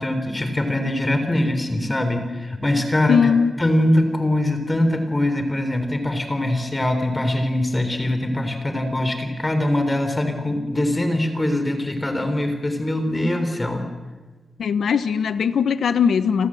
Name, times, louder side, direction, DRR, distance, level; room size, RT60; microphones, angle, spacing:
voice 1, 0.0-3.2 3.6-13.9, left 1 dB, 20° left, 7 dB, 3.7 m, -22 dB
voice 2, 3.1-3.5 14.6-16.5, left 7 dB, 85° left, 12 dB, 1.0 m, -19 dB
29.5 x 25.5 x 7.7 m, 1.3 s
wide cardioid pair, 140°, 0 cm